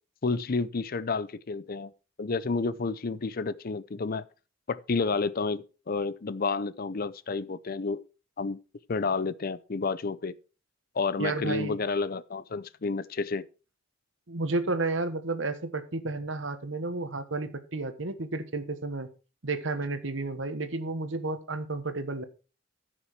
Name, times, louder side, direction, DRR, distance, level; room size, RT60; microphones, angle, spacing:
voice 1, 0.2-1.9 2.2-4.2 4.7-8.0 8.4-8.6 8.9-10.4 10.9-13.5, left 4 dB, 45° left, 0.6 m, -30 dB
voice 2, 11.2-11.8 14.3-19.1 19.4-22.2, right 3 dB, 65° right, 1.3 m, -32 dB
14.5 x 6.1 x 4.7 m
head